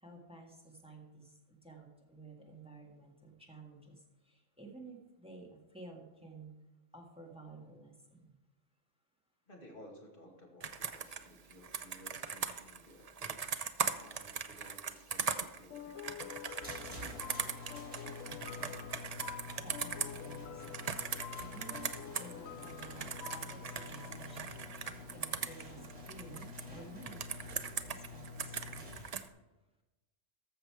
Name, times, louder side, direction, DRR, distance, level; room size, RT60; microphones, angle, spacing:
voice 1, 0.0-4.0 4.2-6.5 6.9-8.3 19.6-20.9 21.5-24.6 25.1-27.3 27.8-28.8, right 3 dB, 5° right, 0 dB, 1.6 m, -53 dB
voice 2, 9.5-17.1, equal, 40° left, -1 dB, 2.4 m, -57 dB
Computer keyboard, 10.6-22.3 22.6-26.6 27.0-29.3, right 6 dB, 50° right, 0.4 m, -40 dB
sound 1, 15.7-25.0, left 9 dB, 85° left, 1.1 m, -49 dB
sound 2, 16.6-29.1, left 2 dB, 65° right, 3.6 m, -48 dB
14.0 x 6.7 x 4.7 m, 1.1 s
omnidirectional pair, 1.3 m